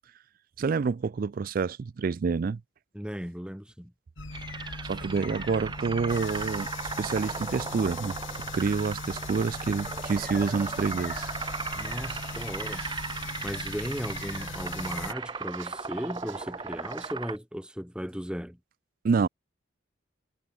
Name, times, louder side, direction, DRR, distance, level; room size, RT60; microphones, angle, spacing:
voice 1, 0.6-2.6 4.8-6.7 7.0-8.2 8.5-11.3 19.0-19.3, right 5 dB, 45° right, 0.3 m, -28 dB
voice 2, 2.9-3.9 11.7-12.9 13.4-18.6, equal, 5° right, 2.6 m, -36 dB
sound 1, 4.2-15.1, left 3 dB, 65° left, 3.2 m, -39 dB
sound 2, 4.3-17.4, right 4 dB, 20° right, 0.7 m, -37 dB
sound 3, 11.3-17.1, right 8 dB, 70° right, 6.7 m, -53 dB
head